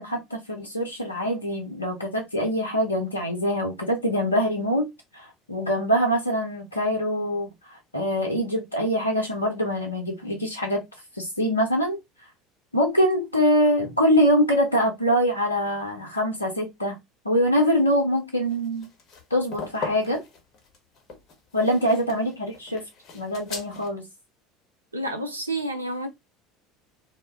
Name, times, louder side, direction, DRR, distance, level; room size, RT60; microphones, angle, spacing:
voice 1, 0.0-4.9 5.1-7.5 7.9-10.8 11.2-12.0 12.7-17.0 17.2-18.9 19.3-20.2 21.5-22.8 23.1-24.0, equal, 90° left, 0.7 m, -24 dB
sound 1, 18.5-23.9, left 4 dB, 45° left, 0.9 m, -39 dB
voice 2, 24.9-26.1, right 1 dB, 90° right, 0.4 m, -30 dB
2.1 x 2.1 x 3.3 m
figure-of-eight pair, 70°, 0 cm